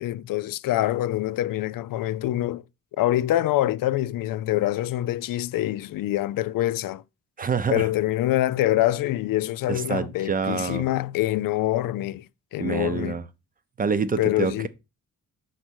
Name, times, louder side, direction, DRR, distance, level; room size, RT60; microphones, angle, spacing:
voice 1, 0.0-2.6 3.0-7.0 7.7-12.2 12.5-13.1 14.2-14.7, left 14 dB, 85° left, 0.5 m, -25 dB
voice 2, 7.4-7.9 9.7-10.9 12.6-13.2 13.8-14.7, right 5 dB, 25° right, 0.7 m, -26 dB
6.2 x 4.1 x 6.2 m
cardioid pair, 140°, 32 cm